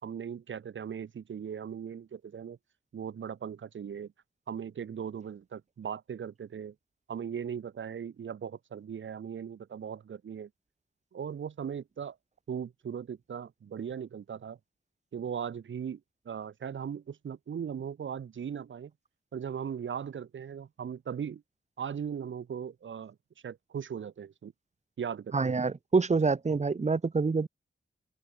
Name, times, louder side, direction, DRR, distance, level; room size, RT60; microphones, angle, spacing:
voice 1, 0.0-2.6 2.9-4.1 4.5-6.7 7.1-10.5 11.1-12.2 12.5-14.6 15.1-18.9 19.3-21.4 21.8-23.2 23.4-24.5 25.0-25.3, right 7 dB, 85° right, 2.4 m, -38 dB
voice 2, 25.3-27.5, right 4 dB, 35° right, 1.4 m, -26 dB
open air
wide cardioid pair, 95°, 19 cm